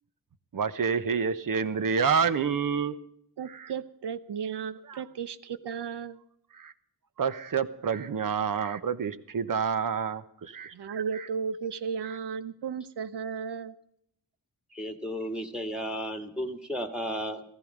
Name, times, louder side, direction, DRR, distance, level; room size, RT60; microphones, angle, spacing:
voice 1, 0.5-3.0 3.5-3.7 4.9-5.0 6.6-6.7 7.2-10.7 11.1-11.3 12.0-12.2, right 6 dB, 55° right, 12 dB, 1.1 m, -28 dB
voice 2, 3.4-6.2 10.7-13.7, right 6 dB, 90° right, 14 dB, 1.0 m, -34 dB
voice 3, 14.7-17.4, equal, ahead, 7 dB, 1.7 m, -34 dB
16.5 x 14.5 x 5.2 m, 0.70 s
wide cardioid pair, 115°, 39 cm